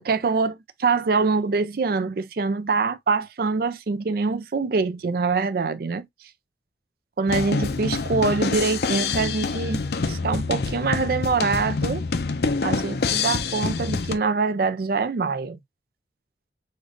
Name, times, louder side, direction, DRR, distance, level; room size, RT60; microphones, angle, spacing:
voice 1, 0.0-6.1 7.2-12.0 12.6-15.6, right 4 dB, 55° right, 0.4 m, -24 dB
sound 1, 7.3-14.2, left 4 dB, 60° left, 0.5 m, -26 dB
6.5 x 2.5 x 2.5 m
head